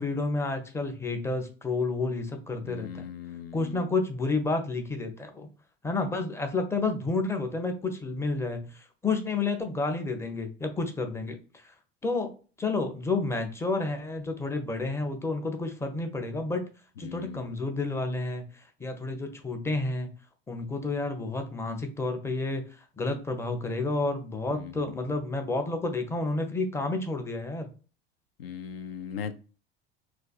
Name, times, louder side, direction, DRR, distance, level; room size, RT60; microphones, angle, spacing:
voice 1, 0.0-3.1 3.5-5.5 5.8-11.4 12.0-12.3 12.6-16.7 17.0-18.4 18.8-20.1 20.5-22.6 23.0-27.7, left 3 dB, 10° left, 5 dB, 0.5 m, -30 dB
voice 2, 2.6-3.8 17.0-17.6 24.5-25.2 28.4-29.3, left 8 dB, 75° left, 10 dB, 0.4 m, -39 dB
3.3 x 2.3 x 2.3 m, 0.36 s
figure-of-eight pair, 70°, 30 cm